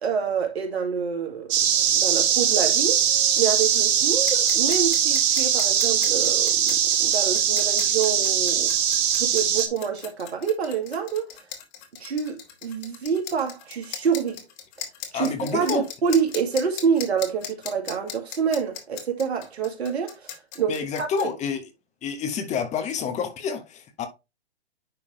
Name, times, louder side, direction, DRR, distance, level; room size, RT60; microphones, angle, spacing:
voice 1, 0.0-1.5 1.9-3.1 3.3-8.7 9.2-11.3 12.0-14.4 15.1-20.3 20.6-21.3, right 6 dB, 75° right, 2.1 m, -27 dB
sound 1, 1.5-9.7, right 9 dB, 35° right, 1.5 m, -21 dB
sound 2, 4.2-21.2, left 9 dB, 40° left, 2.1 m, -37 dB
voice 2, 15.1-15.8 20.7-21.6 22.0-24.1, left 6 dB, 20° left, 1.2 m, -29 dB
10.5 x 3.6 x 3.1 m
hypercardioid pair, 125°, 33 cm